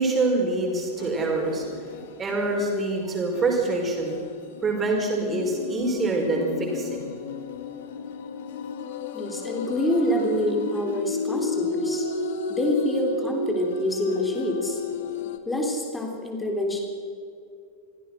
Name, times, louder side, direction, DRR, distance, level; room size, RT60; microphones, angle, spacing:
voice 1, 0.0-1.6 2.2-4.2 4.6-7.1, right 2 dB, 20° right, 1 dB, 5.6 m, -25 dB
sound 1, 1.0-2.8 3.3-15.4, left 4 dB, 55° left, 1.5 m, -33 dB
voice 2, 9.1-12.0 12.5-14.8 15.5-16.8, left 1 dB, 10° left, 2 dB, 3.4 m, -26 dB
26.5 x 16.0 x 6.3 m, 2.4 s
figure-of-eight pair, 90°, 0 cm